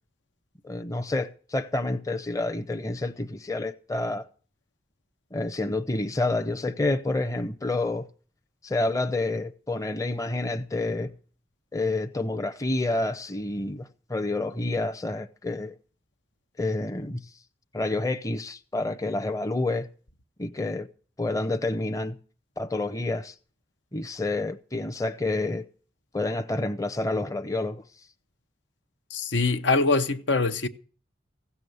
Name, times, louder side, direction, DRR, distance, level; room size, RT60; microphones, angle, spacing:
voice 1, 0.6-4.3 5.3-8.1 8.6-11.1 11.7-15.7 16.6-17.2 17.7-19.9 20.4-20.9 21.2-22.2 22.6-23.3 23.9-25.6 26.1-27.8, left 2 dB, 20° left, 0.6 m, -28 dB
voice 2, 29.1-30.7, left 3 dB, 85° left, 0.9 m, -23 dB
16.0 x 7.1 x 7.9 m
head